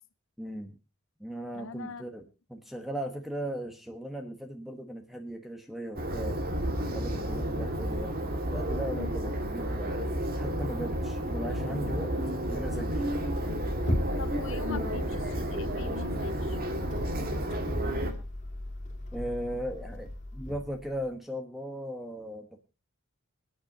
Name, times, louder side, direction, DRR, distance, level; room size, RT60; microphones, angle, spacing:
voice 1, 0.4-0.8 1.2-2.2 2.5-6.4 6.9-9.9 10.4-12.1 12.5-13.1 19.1-22.6, right 1 dB, ahead, 5 dB, 1.1 m, -38 dB
voice 2, 1.5-2.0 7.2-7.4 14.2-16.7, left 4 dB, 60° left, 13 dB, 0.7 m, -44 dB
sound 1, 6.0-18.1, equal, 40° right, 2.0 m, -31 dB
sound 2, 12.5-21.1, left 1 dB, 30° left, 2.4 m, -37 dB
26.5 x 9.2 x 2.7 m, 0.30 s
head